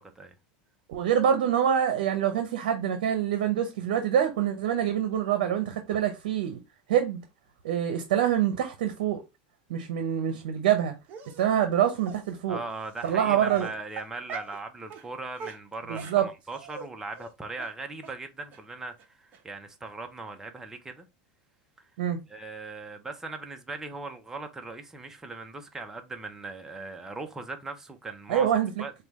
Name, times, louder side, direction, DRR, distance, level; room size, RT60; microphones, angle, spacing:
voice 1, 0.9-6.6 6.9-7.2 7.6-9.2 9.7-10.9 11.4-12.6 13.0-13.7 15.9-16.3 22.0-22.2 28.3-28.7, right 9 dB, 80° right, 0.7 m, -25 dB
Dog, 11.1-11.4 12.0-12.2 13.0-13.1 13.4-14.6 14.9-15.1 15.4-16.9 17.2-17.3 17.6-17.7 18.0-18.1 18.5-18.6 19.0-19.1 19.3-19.4, right 5 dB, 40° right, 0.7 m, -41 dB
voice 2, 12.5-21.1 22.3-28.5 28.8-28.9, right 3 dB, 10° right, 0.7 m, -39 dB
5.0 x 2.3 x 3.0 m
supercardioid pair, 125°, 5 cm